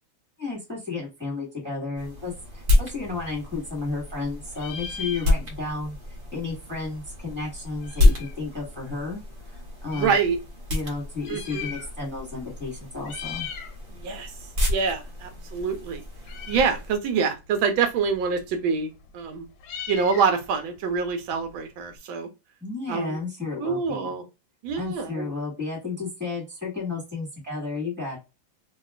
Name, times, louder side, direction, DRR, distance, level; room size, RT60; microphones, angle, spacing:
voice 1, 0.4-6.0 6.3-9.2 9.5-10.2 10.7-13.5 22.6-24.1 24.8-28.2, left 3 dB, 5° right, -1 dB, 1.3 m, -32 dB
sound 1, 2.0-17.0, left 2 dB, 55° right, 1.0 m, -29 dB
Meow, 3.2-4.2 4.5-5.8 6.1-6.2 6.3-8.4 9.1-10.3 11.0-12.2 12.5-12.7 13.0-13.8 14.1-22.0, left 7 dB, 90° left, 1.4 m, -41 dB
voice 2, 9.9-10.4 11.3-11.7 13.9-14.3 14.7-16.0 16.5-19.5 19.9-22.3 22.9-23.2 23.6-24.2 24.6-25.3, right 5 dB, 90° right, 6 dB, 1.4 m, -26 dB
2.9 x 2.8 x 2.3 m, 0.26 s
omnidirectional pair, 2.1 m